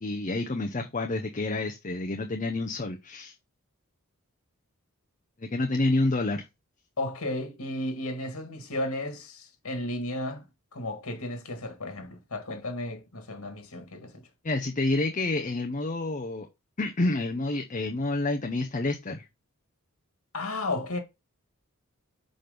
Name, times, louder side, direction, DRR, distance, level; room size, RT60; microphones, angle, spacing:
voice 1, 0.0-3.3 5.4-6.4 14.4-16.5 16.8-19.2, left 2 dB, 35° left, 0.7 m, -28 dB
voice 2, 7.0-10.5 10.7-14.2 20.3-21.0, left 1 dB, 80° left, 1.9 m, -34 dB
6.0 x 5.0 x 5.2 m
head